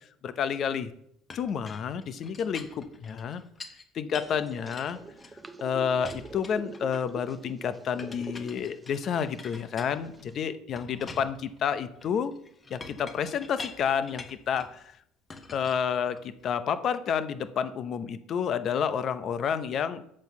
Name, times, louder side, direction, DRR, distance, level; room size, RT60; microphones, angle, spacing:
voice 1, 0.2-0.9 1.3-3.4 3.9-5.0 5.6-12.3 12.7-14.9 15.5-20.0, left 7 dB, 50° left, 11 dB, 0.8 m, -30 dB
Chink clink, 1.3-3.8 4.1-5.6 6.0-7.3 8.0-10.3 10.8-14.8 15.3-16.4, left 3 dB, 25° left, 1.1 m, -46 dB
sound 1, 4.1-10.4, right 2 dB, 15° right, 0.6 m, -46 dB
7.5 x 4.5 x 6.8 m, 0.70 s
supercardioid pair, 100°, 0 cm